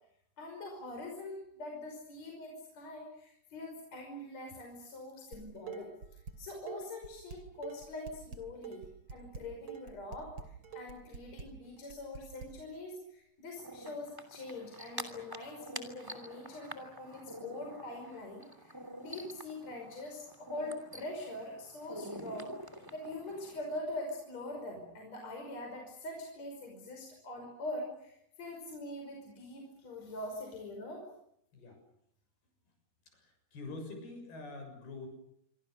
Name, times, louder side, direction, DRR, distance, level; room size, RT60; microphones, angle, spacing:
voice 1, 0.4-5.9 6.4-22.5 22.9-31.0, left 1 dB, 40° left, 1 dB, 6.5 m, -43 dB
Dishes pots and pans, 5.3-6.4 6.7-12.5, right 6 dB, 35° right, 3.3 m, -46 dB
sound 1, 13.6-23.8, right 1 dB, 5° right, 2.1 m, -47 dB
voice 2, 33.1-35.1, left 3 dB, 70° left, 5 dB, 8.7 m, -45 dB
27.5 x 25.0 x 6.7 m, 0.74 s
omnidirectional pair, 4.6 m